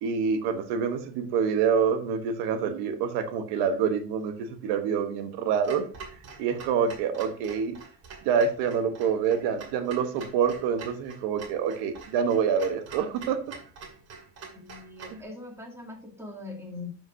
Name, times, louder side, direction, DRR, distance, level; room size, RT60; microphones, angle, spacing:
voice 1, 0.0-5.9 6.4-7.8 8.2-13.4 15.1-15.2, right 6 dB, 85° right, 8 dB, 1.0 m, -26 dB
Clock, 5.6-15.2, right 4 dB, 45° right, 2.4 m, -46 dB
voice 2, 14.5-17.0, left 3 dB, 5° right, 0 dB, 2.2 m, -41 dB
12.5 x 5.2 x 2.6 m, 0.40 s
cardioid pair, 140°, 37 cm